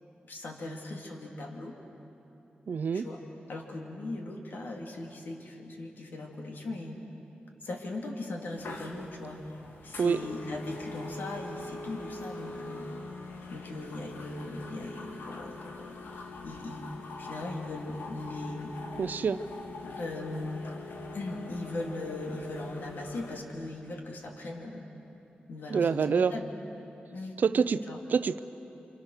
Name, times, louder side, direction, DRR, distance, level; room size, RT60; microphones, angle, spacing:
voice 1, 0.3-1.7 2.9-3.2 3.5-7.0 7.6-9.6 9.8-13.1 13.5-16.0 16.4-16.9 17.2-18.7 20.0-20.6 21.1-24.9 25.5-26.5 27.1-27.4 27.9-28.0, left 2 dB, 70° left, 1 dB, 3.1 m, -39 dB
voice 2, 2.7-3.1 10.0-10.2 19.0-19.4 25.7-26.3 27.4-27.8 28.1-28.4, right 6 dB, 60° right, 13 dB, 0.6 m, -26 dB
sound 1, 8.6-23.4, left 3 dB, 85° left, 2.1 m, -43 dB
29.5 x 26.5 x 6.6 m, 2.9 s
wide cardioid pair, 175°, 3 cm